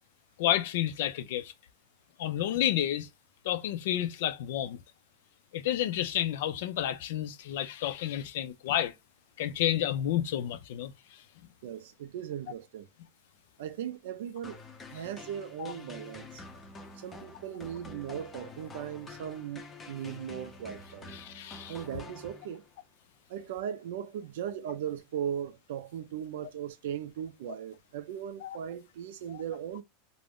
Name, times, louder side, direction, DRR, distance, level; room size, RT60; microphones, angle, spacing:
voice 1, 0.4-1.5 2.2-3.1 3.4-4.8 5.5-8.9 9.4-10.9 15.6-15.7 21.1-21.7 28.4-28.6 29.3-29.4, left 12 dB, 70° left, 0.4 m, -30 dB
voice 2, 11.6-12.9 13.6-16.4 17.0-21.2 21.7-22.6 23.3-29.8, right 9 dB, 75° right, 0.4 m, -38 dB
sound 1, 14.4-22.8, left 3 dB, 15° left, 0.5 m, -48 dB
2.5 x 2.1 x 3.5 m
supercardioid pair, 155°, 0 cm